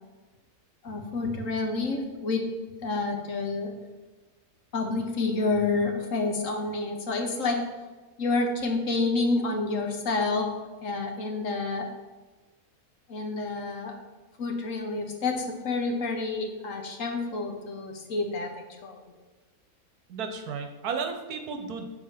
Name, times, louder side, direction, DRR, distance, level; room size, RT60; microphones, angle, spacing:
voice 1, 0.8-2.4 2.8-3.7 4.7-7.6 8.2-10.5 10.8-11.9 13.1-13.9 14.4-18.5 18.8-19.1, left 3 dB, 60° left, 3 dB, 1.3 m, -29 dB
voice 2, 20.1-21.9, right 5 dB, 75° right, 5 dB, 1.3 m, -33 dB
7.3 x 4.4 x 5.8 m, 1.2 s
omnidirectional pair, 1.6 m